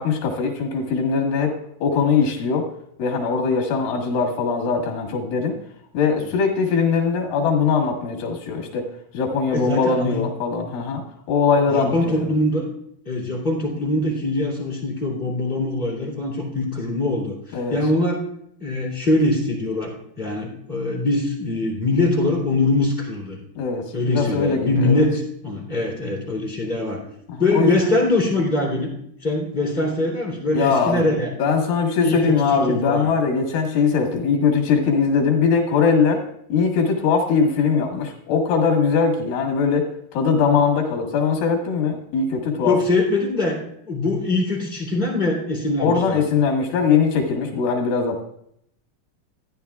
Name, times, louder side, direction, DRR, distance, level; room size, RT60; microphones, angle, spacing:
voice 1, 0.0-1.5 1.8-2.7 3.0-5.6 5.9-8.9 9.1-12.3 17.5-17.8 23.6-25.1 27.3-27.9 30.5-31.1 31.4-36.2 36.5-42.8 45.8-48.2, left 5 dB, 85° left, 2 dB, 3.4 m, -21 dB
voice 2, 9.5-10.2 11.7-12.7 13.0-18.2 18.6-23.4 23.9-27.0 27.4-28.9 29.2-31.3 32.0-33.1 42.6-43.6 43.8-46.2, left 2 dB, 15° left, -5 dB, 2.6 m, -22 dB
14.5 x 9.8 x 2.3 m, 0.71 s
omnidirectional pair, 4.1 m